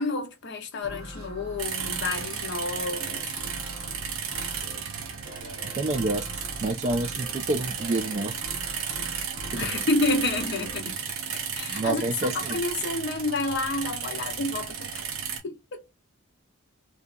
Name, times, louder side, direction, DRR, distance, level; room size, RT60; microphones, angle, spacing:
voice 1, 0.0-3.5 9.6-11.0 11.5-15.0 15.4-15.9, left 2 dB, 50° left, 0.5 m, -29 dB
sound 1, 0.8-12.0, equal, 85° right, 1.0 m, -43 dB
sound 2, 1.6-15.4, right 7 dB, 70° right, 0.6 m, -34 dB
voice 2, 5.8-6.3 6.6-8.3 11.7-12.6, right 2 dB, 30° right, 0.3 m, -28 dB
2.7 x 2.3 x 2.2 m
head